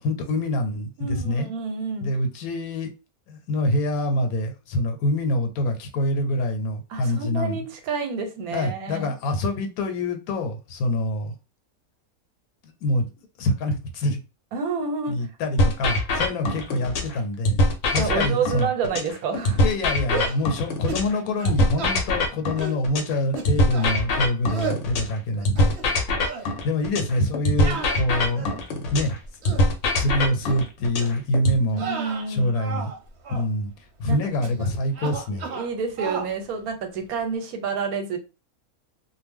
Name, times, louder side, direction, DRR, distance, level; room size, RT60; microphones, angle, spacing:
voice 1, 0.0-1.5 2.0-2.9 3.3-7.6 8.5-11.3 12.6-14.2 15.1-17.6 17.9-18.7 19.6-25.8 26.4-28.5 28.9-29.2 30.0-31.9 32.3-32.9 33.3-33.7 34.0-35.5, left 1 dB, 85° left, 6 dB, 1.1 m, -25 dB
voice 2, 1.0-2.1 6.9-9.1 14.5-15.2 18.0-19.6 31.7-32.5 34.1-34.5 35.5-38.2, right 5 dB, 90° right, 6 dB, 1.1 m, -29 dB
sound 1, 15.6-17.2 17.4-21.2 21.4-25.2 25.4-29.2 29.4-31.6, left 1 dB, 65° left, 0.9 m, -23 dB
sound 2, 20.1-20.4 20.9-21.1 21.4-22.0 22.6-22.8 23.4-23.9 24.5-24.8 25.4-25.9 26.2-26.5 27.6-28.7 29.2-29.7 30.4-30.6 31.0-31.2 31.7-33.0 33.2-33.5 34.4-34.7 34.9-35.7 36.0-36.3, right 5 dB, 55° right, 0.8 m, -33 dB
2.5 x 2.0 x 3.4 m, 0.30 s
omnidirectional pair, 1.5 m